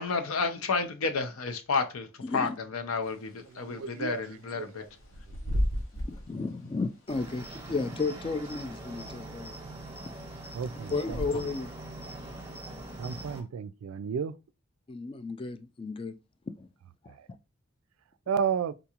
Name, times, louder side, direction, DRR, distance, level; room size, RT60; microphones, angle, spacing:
voice 1, 0.0-2.1 2.3-4.8, left 4 dB, 90° left, 0.6 m, -31 dB
voice 2, 2.2-2.6 6.1-9.6 10.9-11.7 14.9-16.1 16.6-16.7, left 3 dB, 25° left, 0.3 m, -33 dB
Bird / Wind, 3.0-11.7, equal, 70° left, 1.1 m, -37 dB
voice 3, 3.5-4.9 5.4-5.6 10.5-11.4 13.0-14.3 17.1-17.2 18.3-18.7, right 7 dB, 80° right, 0.3 m, -33 dB
Cricket, 7.1-13.4, right 2 dB, 15° right, 0.8 m, -42 dB
3.7 x 2.4 x 2.8 m
head